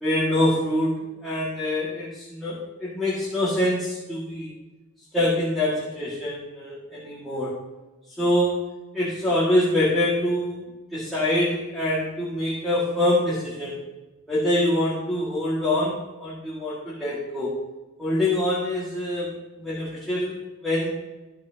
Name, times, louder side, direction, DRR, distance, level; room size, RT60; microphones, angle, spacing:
voice 1, 0.0-4.5 5.1-7.5 8.2-8.6 8.9-10.7 10.9-13.8 14.3-17.5 18.0-19.3 19.6-20.4 20.6-20.9, left 1 dB, ahead, -11 dB, 2.0 m, -25 dB
13.5 x 6.0 x 2.9 m, 1.1 s
head